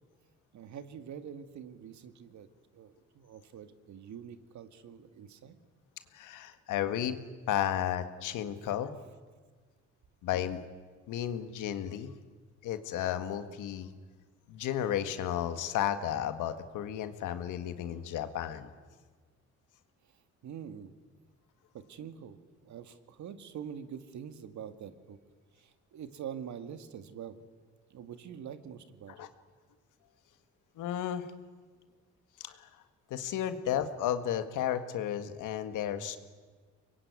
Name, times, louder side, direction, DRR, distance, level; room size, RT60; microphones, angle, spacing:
voice 1, 0.5-2.5 2.7-5.6 20.4-20.9 21.7-25.2 25.6-27.4 27.9-29.3, right 8 dB, 70° right, 10 dB, 1.9 m, -45 dB
voice 2, 6.1-7.2 7.5-9.0 10.2-10.6 11.1-12.1 12.6-13.9 14.5-18.7 29.1-29.3 30.8-31.2 32.4-32.7 33.1-36.2, left 10 dB, 85° left, 10 dB, 1.8 m, -33 dB
25.0 x 22.0 x 9.5 m, 1.5 s
cardioid pair, 90°, 30 cm